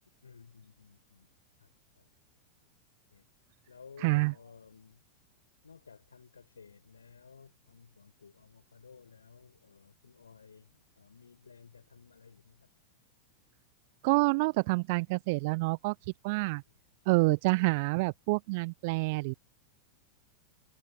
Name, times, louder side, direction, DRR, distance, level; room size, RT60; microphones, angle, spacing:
voice 1, 0.2-1.3 1.6-1.7 2.0-2.1 3.1-3.3 3.7-5.0 5.6-12.7, left 5 dB, 75° left, 7.3 m, -55 dB
voice 2, 4.0-4.3 14.0-15.9 16.2-16.6 17.1-19.3, right 26 dB, 50° right, 0.4 m, -27 dB
figure-of-eight pair, 90°, 0 cm